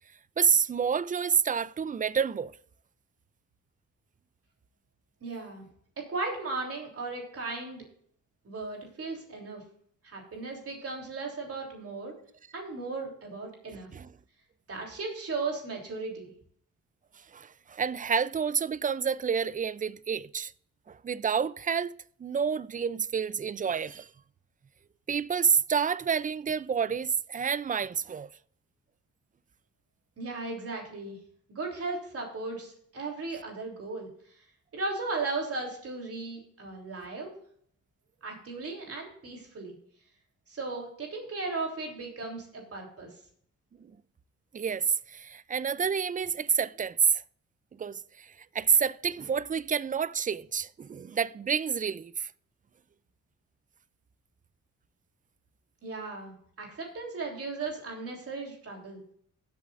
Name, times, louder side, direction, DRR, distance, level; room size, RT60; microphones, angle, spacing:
voice 1, 0.4-2.5 13.9-14.1 17.3-20.5 20.9-24.1 25.1-28.3 43.8-43.9 44.5-47.2 47.8-52.3, right 6 dB, 25° right, 0.4 m, -28 dB
voice 2, 5.2-5.6 6.0-7.8 8.5-9.6 10.0-12.1 12.5-13.9 14.7-16.3 30.2-31.2 31.5-34.1 34.7-37.3 38.2-39.8 40.5-43.1 55.8-59.0, right 3 dB, 50° right, 3.4 m, -36 dB
16.0 x 8.3 x 2.5 m
cardioid pair, 95°, 30 cm